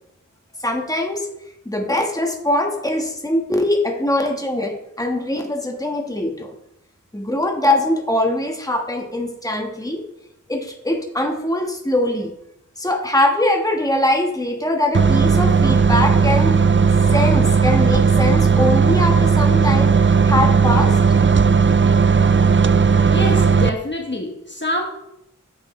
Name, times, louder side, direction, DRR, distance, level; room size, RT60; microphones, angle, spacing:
voice 1, 0.6-1.3 1.6-6.5 7.1-10.1 10.5-12.3 12.8-16.6 17.1-19.9 20.2-21.0, left 1 dB, 10° left, 2 dB, 1.4 m, -22 dB
sound 1, 14.9-23.7, right 5 dB, 40° right, 0.4 m, -15 dB
voice 2, 23.1-24.9, left 1 dB, 35° left, 1 dB, 1.2 m, -25 dB
9.4 x 8.0 x 3.2 m, 0.82 s
wide cardioid pair, 45°, 32 cm